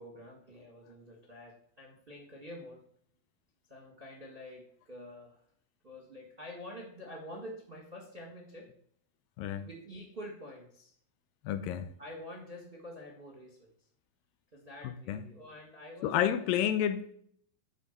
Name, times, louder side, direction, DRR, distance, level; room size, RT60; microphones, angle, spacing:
voice 1, 0.0-2.8 3.7-5.4 5.8-8.7 9.6-10.9 12.0-13.7 14.5-16.7, left 1 dB, 30° right, 1.0 m, -47 dB
voice 2, 11.5-11.9 15.1-15.2 16.0-17.1, left 10 dB, 80° left, 2.3 m, -30 dB
11.0 x 4.5 x 6.7 m
omnidirectional pair, 4.2 m